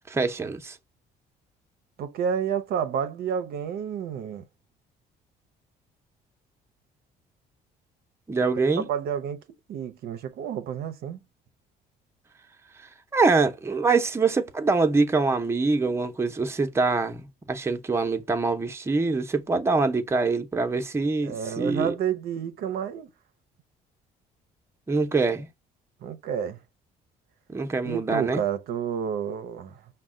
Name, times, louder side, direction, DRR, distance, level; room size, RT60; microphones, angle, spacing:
voice 1, 0.1-0.8 8.3-8.8 13.1-21.9 24.9-25.5 27.5-28.4, right 3 dB, 15° right, 0.7 m, -24 dB
voice 2, 2.0-4.4 8.8-9.4 9.7-11.2 21.2-23.1 26.0-26.6 27.8-29.8, right 8 dB, 65° right, 0.6 m, -30 dB
5.2 x 2.2 x 3.6 m
cardioid pair, 110°, 17 cm